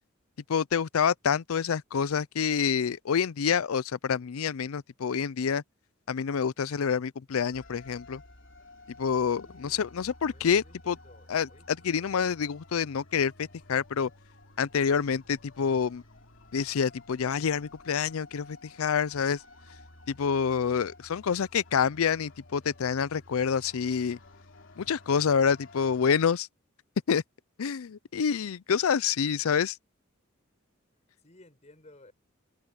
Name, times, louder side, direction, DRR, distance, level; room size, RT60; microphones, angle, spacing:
voice 1, 0.5-5.6 6.1-8.2 9.0-11.0 11.3-14.1 14.6-16.0 16.5-19.4 20.1-24.2 24.8-26.5 27.1-27.2 27.6-29.8, left 6 dB, 90° left, 0.5 m, -27 dB
sound 1, 7.5-26.3, left 2 dB, 60° left, 3.4 m, -53 dB
voice 2, 9.4-9.9 10.3-12.1 31.2-32.1, left 1 dB, 35° left, 5.5 m, -57 dB
head